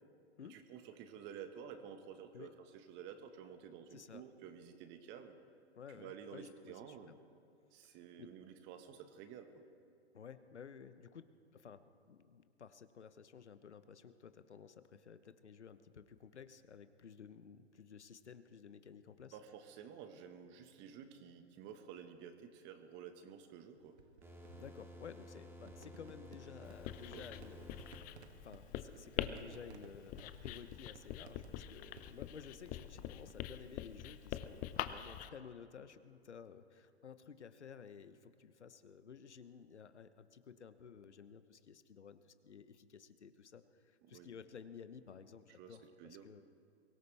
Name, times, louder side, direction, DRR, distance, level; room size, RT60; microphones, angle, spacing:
voice 1, 0.5-5.4 5.9-7.1 7.7-9.6 19.3-23.9 27.1-27.3 44.1-44.3 45.6-46.3, right 8 dB, 35° right, 7 dB, 1.5 m, -52 dB
voice 2, 3.9-4.2 5.8-7.2 7.9-8.3 10.1-19.4 24.5-46.4, left 7 dB, 85° left, 12 dB, 1.0 m, -54 dB
sound 1, 23.8-33.3, right 5 dB, 75° right, 1.5 m, -60 dB
sound 2, 24.2-28.1, left 1 dB, 5° right, 2.2 m, -54 dB
Writing, 26.7-35.3, left 12 dB, 25° left, 0.6 m, -45 dB
23.5 x 17.0 x 3.4 m, 2.4 s
hypercardioid pair, 120°, 33 cm